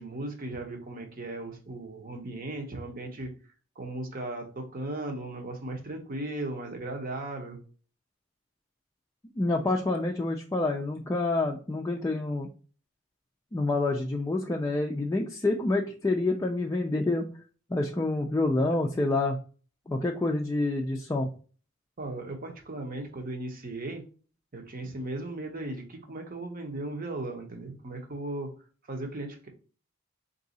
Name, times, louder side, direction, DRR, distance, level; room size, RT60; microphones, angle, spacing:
voice 1, 0.0-3.3 3.8-7.6 22.0-24.0 24.5-28.5 28.9-29.5, right 2 dB, 45° right, 3 dB, 0.9 m, -37 dB
voice 2, 9.4-12.5 13.5-17.3 17.7-19.4 19.9-21.3, left 2 dB, 15° left, 0 dB, 0.3 m, -27 dB
3.8 x 2.7 x 3.9 m, 0.40 s
head